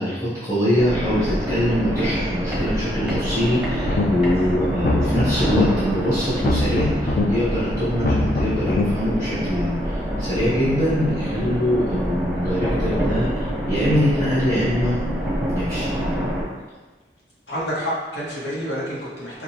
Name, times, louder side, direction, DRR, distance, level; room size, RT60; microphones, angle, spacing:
voice 1, 0.0-15.0 15.5-15.9, equal, 15° left, -12 dB, 1.0 m, -23 dB
sound 1, 0.8-16.4, equal, 5° right, 0.8 m, -26 dB
sound 2, 3.8-4.3 4.7-5.6 6.3-7.2 7.9-8.8, left 2 dB, 50° left, 0.4 m, -23 dB
voice 2, 17.5-19.4, equal, 80° left, -7 dB, 1.4 m, -29 dB
4.9 x 2.6 x 2.9 m, 1.2 s
head